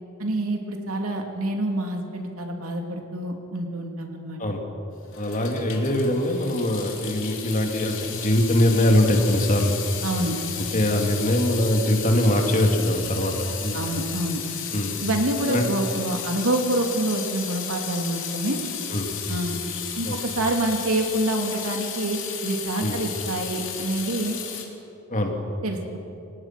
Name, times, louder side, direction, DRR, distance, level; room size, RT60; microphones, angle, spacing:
voice 1, 0.2-4.4 10.0-10.4 13.7-14.4 15.0-18.6 19.3-19.6 20.0-24.4 25.6-26.0, right 1 dB, 75° right, 2 dB, 2.9 m, -27 dB
Water tap faucet / Sink (filling or washing) / Drip, 5.0-24.6, left 8 dB, 60° left, 3.1 m, -34 dB
voice 2, 5.2-9.7 10.5-13.8 14.7-14.9 15.4-15.6 18.9-19.2 20.0-20.2 22.8-23.0 25.1-25.3, left 1 dB, 35° left, 3 dB, 2.6 m, -22 dB
28.5 x 17.5 x 6.1 m, 2.8 s
head